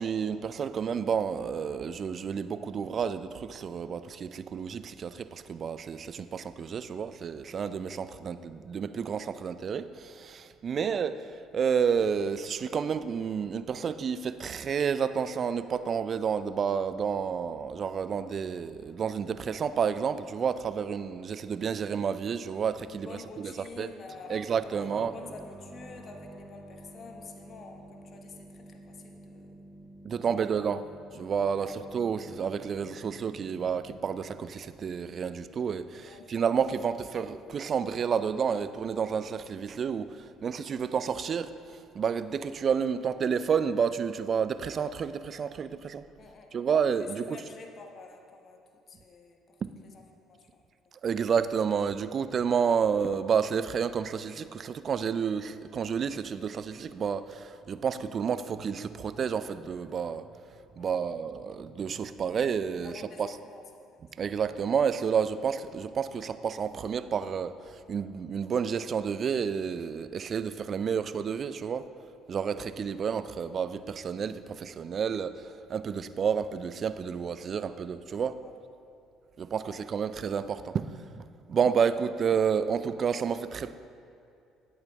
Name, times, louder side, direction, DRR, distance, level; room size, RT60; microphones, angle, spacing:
voice 1, 0.0-23.9 24.3-25.1 30.0-30.8 31.1-46.1 46.5-47.4 49.6-49.7 51.0-60.3 60.8-62.9 63.2-63.3 64.2-71.9 72.3-78.4 79.4-81.2 81.5-83.7, right 7 dB, 50° right, 13 dB, 0.4 m, -30 dB
voice 2, 22.9-29.6 30.2-30.7 31.6-31.7 36.0-36.4 46.2-46.6 47.0-48.6 48.9-49.6 49.9-50.6 60.8-61.0 62.8-63.6 71.0-71.1 78.4-78.5 79.6-79.8, left 4 dB, 50° left, 3 dB, 1.1 m, -48 dB
sound 1, 24.1-35.5, right 1 dB, 10° right, 1.1 m, -50 dB
11.0 x 8.7 x 3.5 m, 2.5 s
hypercardioid pair, 65°, 0 cm